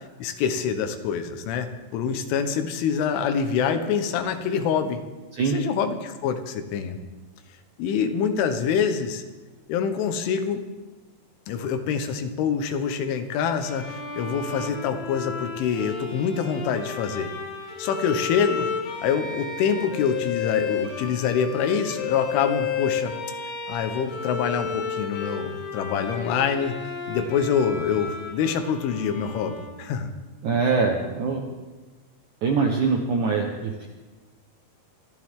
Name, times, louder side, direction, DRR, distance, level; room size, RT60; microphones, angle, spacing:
voice 1, 0.2-5.0 5.5-7.0 7.8-9.2 9.7-10.7 11.5-17.3 17.8-18.7 19.0-23.1 23.7-26.8 27.1-30.1, left 7 dB, 90° left, 7 dB, 3.7 m, -25 dB
Bowed string instrument, 13.6-30.2, left 6 dB, 60° left, 2.2 m, -33 dB
voice 2, 30.4-31.4 32.4-33.9, right 4 dB, 75° right, 0 dB, 1.8 m, -23 dB
25.0 x 13.0 x 3.7 m, 1.2 s
omnidirectional pair, 5.4 m